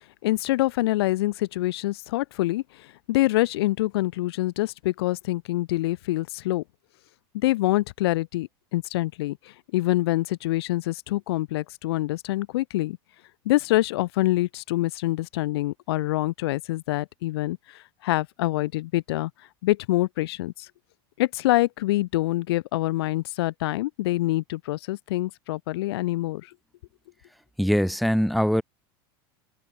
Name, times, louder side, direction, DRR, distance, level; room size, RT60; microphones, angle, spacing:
voice 1, 0.2-6.6 7.3-13.0 13.4-19.3 19.6-20.7 21.2-26.5, left 17 dB, 80° left, 0.9 m, -26 dB
voice 2, 27.6-28.6, equal, ahead, 0.9 m, -22 dB
supercardioid pair, 120°, 13 cm